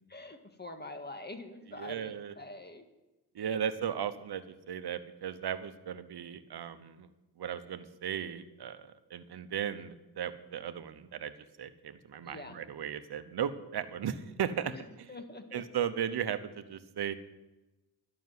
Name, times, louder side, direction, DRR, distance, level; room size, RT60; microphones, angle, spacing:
voice 1, 0.1-2.8 3.4-3.5 12.2-12.6 14.7-15.6, left 2 dB, 25° left, 7 dB, 1.7 m, -45 dB
voice 2, 1.8-2.3 3.3-7.1 7.4-11.3 11.6-15.1 15.5-17.1, right 8 dB, 70° right, 12 dB, 1.0 m, -36 dB
12.0 x 6.2 x 9.5 m, 1.0 s
cardioid pair, 60°, 40 cm